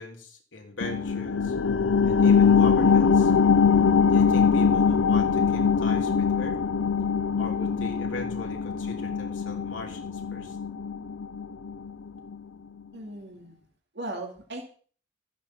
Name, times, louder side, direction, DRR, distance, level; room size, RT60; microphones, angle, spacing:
voice 1, 0.0-1.5 2.0-3.3 4.1-6.6 7.4-10.6, left 2 dB, 75° left, 1 dB, 3.1 m, -39 dB
sound 1, 0.8-11.9 12.3-12.4, left 6 dB, 90° left, 0.6 m, -22 dB
voice 2, 12.9-13.6 13.9-14.6, right 2 dB, 60° right, 0 dB, 2.7 m, -37 dB
14.0 x 9.0 x 5.8 m, 0.43 s
head